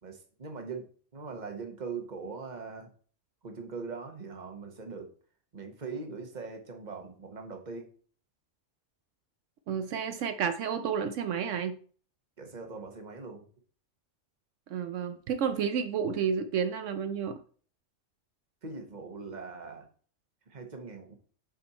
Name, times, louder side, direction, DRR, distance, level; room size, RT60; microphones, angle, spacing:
voice 1, 0.0-2.9 3.4-5.1 5.5-7.9 12.4-13.5 18.6-19.9 20.5-21.2, right 4 dB, 35° right, 5 dB, 1.3 m, -41 dB
voice 2, 9.7-11.8 14.7-17.4, right 7 dB, 75° right, 9 dB, 1.0 m, -31 dB
7.7 x 4.3 x 4.2 m, 0.43 s
omnidirectional pair, 1.3 m